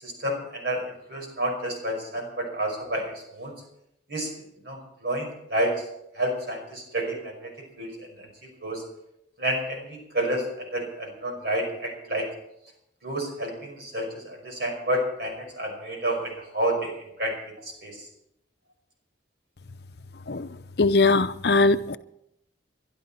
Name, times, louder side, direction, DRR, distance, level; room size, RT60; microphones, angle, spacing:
voice 1, 0.0-3.5 4.1-4.3 4.7-5.7 6.2-7.5 7.8-7.9 8.6-8.8 9.4-12.3 13.0-17.3 17.8-18.0, right 1 dB, 60° right, 5.3 m, -29 dB
voice 2, 20.8-22.0, left 3 dB, 60° left, 0.7 m, -20 dB
22.0 x 11.5 x 4.3 m
head